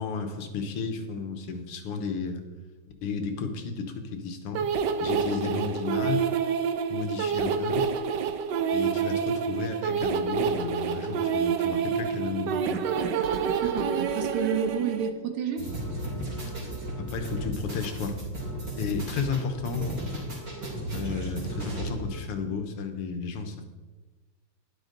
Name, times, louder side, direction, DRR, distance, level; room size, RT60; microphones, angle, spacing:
voice 1, 0.0-2.4 3.0-4.7 5.0-6.3 6.9-7.8 8.7-12.8 17.0-18.2 18.8-19.9 20.9-23.6, left 5 dB, 85° left, 6 dB, 2.1 m, -33 dB
sound 1, 4.5-15.1, right 6 dB, 65° right, 1.1 m, -28 dB
voice 2, 13.6-15.7, right 7 dB, 85° right, 6 dB, 2.1 m, -29 dB
sound 2, 15.6-22.2, right 1 dB, 40° right, 3.4 m, -35 dB
12.0 x 10.5 x 3.9 m, 1.3 s
omnidirectional pair, 2.4 m